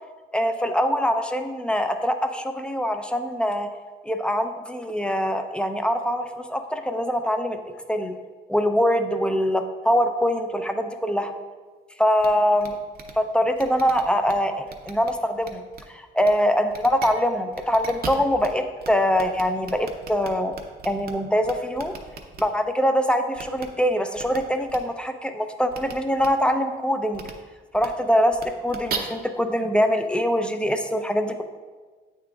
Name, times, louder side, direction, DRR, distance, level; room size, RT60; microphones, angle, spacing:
voice 1, 0.3-3.7 4.0-7.6 7.9-8.1 8.5-11.3 12.0-12.8 13.2-15.6 16.2-20.6 20.8-21.9 22.4-27.3 27.7-31.4, equal, 5° left, 7 dB, 0.5 m, -23 dB
sound 1, 12.2-12.3 12.6-12.7 12.9-13.1 13.6-14.3 14.7-15.1 15.4-15.8 16.2-16.3 16.7-17.1 17.5-18.5 18.8-18.9 19.1-21.1 21.4-22.4 23.4-23.6 24.2-24.4 24.7-24.8 25.7-25.9 26.2-26.3 27.1-27.3 27.7-27.9 28.3-29.0, right 6 dB, 50° right, 0.8 m, -36 dB
8.5 x 3.7 x 3.4 m, 1.4 s
cardioid pair, 90°, 20 cm